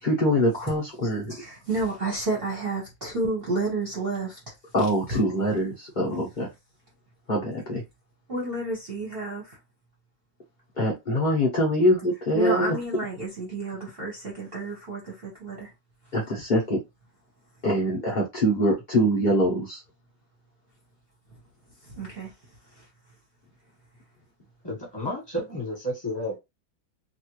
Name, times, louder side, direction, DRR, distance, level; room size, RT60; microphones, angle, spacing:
voice 1, 0.0-1.3 4.7-6.5 7.3-7.8 10.8-12.8 16.1-16.8 17.6-19.8, equal, 80° left, 0.4 m, -24 dB
voice 2, 1.3-4.3 8.3-9.4 12.3-15.7 22.0-22.3, right 2 dB, 40° right, 0.9 m, -30 dB
voice 3, 24.6-26.4, left 1 dB, 15° left, 1.3 m, -31 dB
3.2 x 2.4 x 3.0 m
omnidirectional pair, 2.2 m